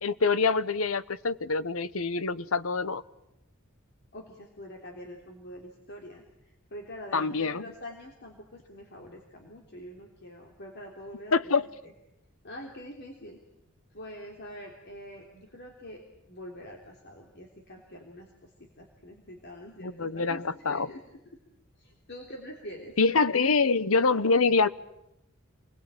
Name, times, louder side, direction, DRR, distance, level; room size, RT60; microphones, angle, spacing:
voice 1, 0.0-3.0 7.1-7.7 11.3-11.7 19.8-20.9 23.0-24.7, left 4 dB, 75° left, 15 dB, 1.0 m, -25 dB
voice 2, 4.1-11.9 12.4-13.4 13.9-21.0 21.8-22.9, equal, 55° left, 1 dB, 3.4 m, -45 dB
28.5 x 21.5 x 9.0 m, 0.87 s
head